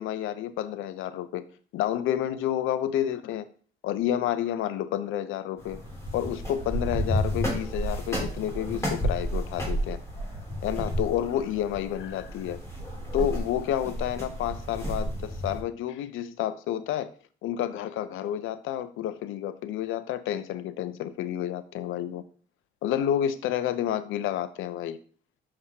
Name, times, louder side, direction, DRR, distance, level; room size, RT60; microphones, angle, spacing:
voice 1, 0.0-1.4 1.7-3.5 3.8-5.8 6.1-10.0 10.6-12.6 13.1-17.1 17.4-22.2 22.8-25.0, left 11 dB, 85° left, 0.5 m, -30 dB
sound 1, 5.6-15.6, equal, 15° left, 3.1 m, -32 dB
7.2 x 4.8 x 2.8 m
cardioid pair, 90°, 20 cm